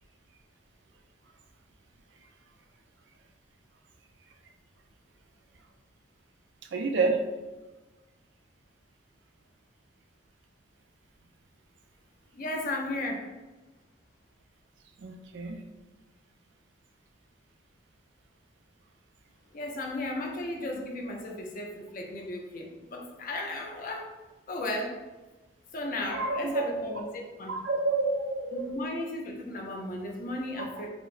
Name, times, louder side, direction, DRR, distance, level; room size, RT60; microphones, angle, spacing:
voice 1, 6.7-7.2 15.0-15.6 26.1-26.7 27.5-28.7 30.6-30.9, right 3 dB, 60° right, 4 dB, 0.4 m, -29 dB
voice 2, 12.3-13.3 19.5-24.1 24.5-25.0 25.7-27.6 28.5-30.9, left 1 dB, 45° left, 1 dB, 0.4 m, -35 dB
4.4 x 2.0 x 2.4 m, 1.2 s
head